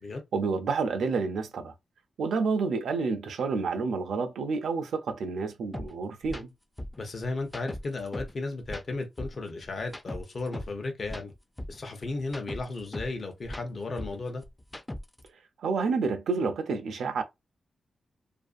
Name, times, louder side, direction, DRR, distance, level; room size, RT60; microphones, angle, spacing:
voice 1, 0.3-1.7 2.2-6.5 15.6-17.2, right 4 dB, 85° right, 0.4 m, -29 dB
sound 1, 5.7-5.9 6.2-6.4 6.8-8.4 8.6-10.8 11.0-13.2 13.4-15.3, left 1 dB, 15° left, 0.4 m, -39 dB
voice 2, 7.0-11.3 11.7-14.4, left 3 dB, 50° left, 0.7 m, -34 dB
2.5 x 2.4 x 2.4 m
cardioid pair, 70°, 0 cm